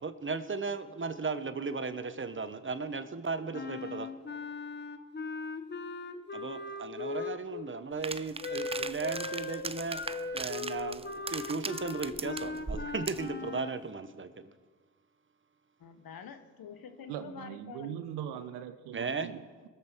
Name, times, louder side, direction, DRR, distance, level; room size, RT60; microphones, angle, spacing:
voice 1, 0.0-4.1 6.3-10.0 10.3-14.5 18.9-19.4, right 4 dB, 30° right, 12 dB, 1.0 m, -36 dB
Wind instrument woodwind instrument, 3.5-7.7 8.4-13.8, left 4 dB, 25° left, 1.0 m, -39 dB
sound 1, 8.0-13.3, right 4 dB, 15° right, 0.5 m, -39 dB
voice 2, 15.8-18.0, left 7 dB, 60° left, 8 dB, 1.4 m, -47 dB
voice 3, 17.1-19.7, right 10 dB, 80° right, 10 dB, 0.7 m, -41 dB
21.5 x 7.6 x 4.6 m, 1.4 s
hypercardioid pair, 45°, 39 cm